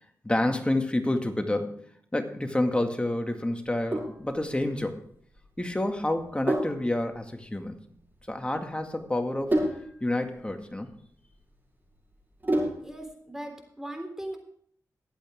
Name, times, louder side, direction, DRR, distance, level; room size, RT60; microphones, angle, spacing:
voice 1, 0.2-1.8 2.1-5.0 5.6-7.8 8.3-9.6 10.0-10.9, left 1 dB, 15° left, 5 dB, 2.1 m, -28 dB
Sink (filling or washing), 3.6-13.1, right 1 dB, 30° right, 6.0 m, -33 dB
voice 2, 12.8-14.4, right 1 dB, 5° right, 4 dB, 3.6 m, -38 dB
22.0 x 8.5 x 3.7 m, 0.64 s
cardioid pair, 55°, 7 cm